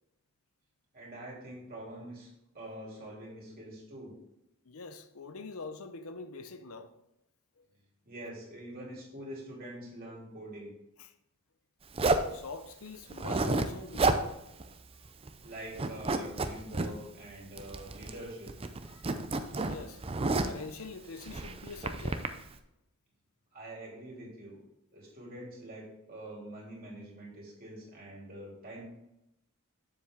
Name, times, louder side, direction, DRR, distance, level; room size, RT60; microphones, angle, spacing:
voice 1, 0.9-2.3 2.5-4.1 8.0-10.7 15.4-18.5 23.5-24.6 24.9-28.8, right 1 dB, 40° right, 2.9 m, -45 dB
voice 2, 4.6-7.0 7.6-7.7 11.0-11.1 12.3-14.3 18.8-19.2 19.6-20.2 20.5-22.3, left 4 dB, 70° left, 0.6 m, -44 dB
Zipper (clothing), 11.9-12.3 13.1-13.7 13.9-14.2 14.6-14.7 15.0-15.5 15.7-16.9 17.6-18.2 18.5-20.6 21.2-22.3, right 3 dB, 25° right, 0.5 m, -30 dB
7.5 x 7.1 x 3.6 m
head